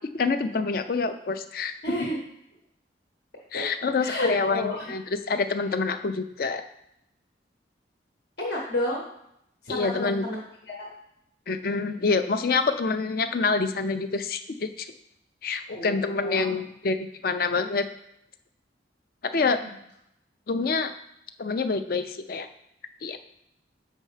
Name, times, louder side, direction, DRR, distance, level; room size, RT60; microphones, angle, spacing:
voice 1, 0.1-1.7 3.5-6.6 9.7-10.2 11.5-14.9 15.4-17.0 17.2-17.9 19.3-19.6 20.5-20.9 21.4-22.5 23.0-23.2, left 4 dB, 50° left, 9 dB, 0.4 m, -26 dB
voice 2, 1.8-2.2 3.5-3.6 4.0-4.9 8.4-9.0 9.6-10.9 15.7-16.6 19.6-19.7, left 1 dB, 70° left, -2 dB, 1.1 m, -31 dB
7.5 x 5.4 x 3.3 m, 0.79 s
head